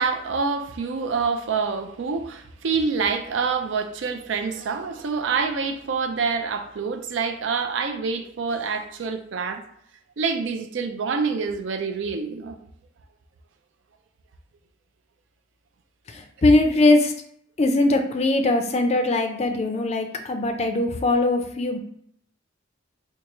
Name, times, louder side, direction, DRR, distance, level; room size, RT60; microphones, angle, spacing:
voice 1, 0.0-9.6 10.2-12.6, right 5 dB, 70° right, 0.4 m, -26 dB
voice 2, 16.1-17.1 17.6-21.8, left 2 dB, 35° left, 0.4 m, -21 dB
4.5 x 2.3 x 2.9 m
head